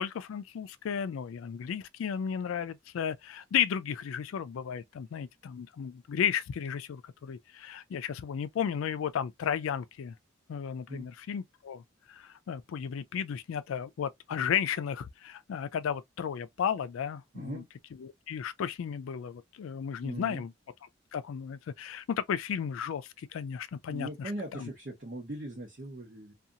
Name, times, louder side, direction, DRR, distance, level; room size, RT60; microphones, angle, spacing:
voice 1, 0.0-10.1 10.5-11.8 12.1-17.6 18.0-20.5 21.1-24.7, left 8 dB, 90° left, 0.3 m, -34 dB
voice 2, 17.3-17.6 20.0-20.4 23.9-26.3, right 1 dB, 45° right, 0.8 m, -40 dB
2.7 x 2.3 x 2.4 m
head